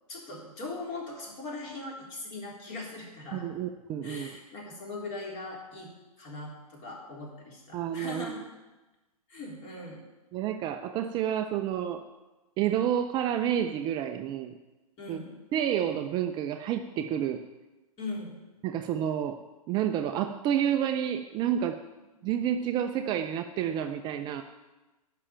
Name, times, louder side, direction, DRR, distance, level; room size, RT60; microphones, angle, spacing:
voice 1, 0.1-3.5 4.0-5.9 6.2-8.4 9.3-10.1 15.0-15.4 18.0-18.4 22.2-22.5, left 2 dB, 35° left, -2 dB, 3.8 m, -40 dB
voice 2, 3.3-4.3 7.7-8.4 10.3-12.0 12.6-14.5 15.1-15.2 15.5-17.4 18.6-19.4 19.7-21.8 22.2-24.4, right 10 dB, 25° right, 7 dB, 0.5 m, -29 dB
11.0 x 5.7 x 8.8 m, 1.1 s
figure-of-eight pair, 115°, 19 cm